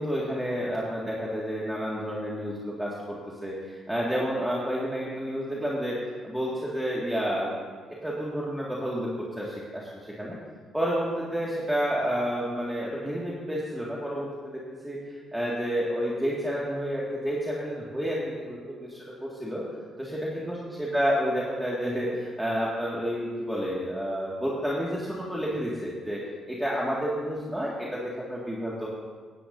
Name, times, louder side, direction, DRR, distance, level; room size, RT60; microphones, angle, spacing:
voice 1, 0.0-6.0 6.2-7.5 8.0-9.9 10.2-10.4 10.7-15.0 15.3-19.6 20.0-20.6 20.9-28.9, equal, 5° right, -6 dB, 2.0 m, -30 dB
17.0 x 10.5 x 2.7 m, 1.5 s
cardioid pair, 90°, 0 cm